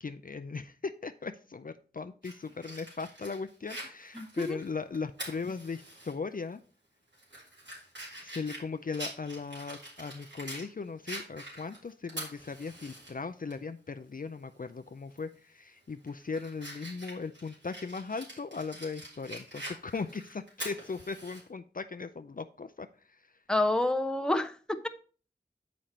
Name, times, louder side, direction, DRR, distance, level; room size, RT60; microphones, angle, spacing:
voice 1, 0.0-6.6 8.2-23.4, left 4 dB, 50° left, 9 dB, 0.4 m, -38 dB
Fire, 2.2-6.1 6.5-6.6 7.1-10.7 11.1-13.1 13.5-13.6 15.1-15.3 15.8-21.4, right 1 dB, 80° right, 3.1 m, -45 dB
voice 2, 4.2-4.6 23.5-24.9, left 2 dB, 5° left, 7 dB, 0.7 m, -28 dB
7.6 x 5.1 x 4.2 m, 0.40 s
wide cardioid pair, 50°, 18 cm